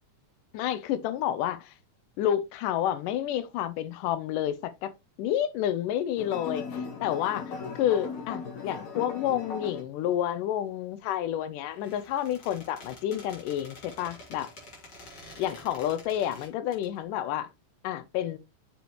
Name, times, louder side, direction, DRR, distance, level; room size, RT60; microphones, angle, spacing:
voice 1, 0.5-1.7 2.2-4.9 5.2-6.6 7.0-14.5 15.4-17.5 17.8-18.4, left 11 dB, 90° left, 2.4 m, -29 dB
sound 1, 6.2-9.8, left 5 dB, 70° left, 3.1 m, -37 dB
Squeak, 11.7-16.9, left 1 dB, 40° left, 3.6 m, -48 dB
6.9 x 6.2 x 3.0 m
omnidirectional pair, 3.6 m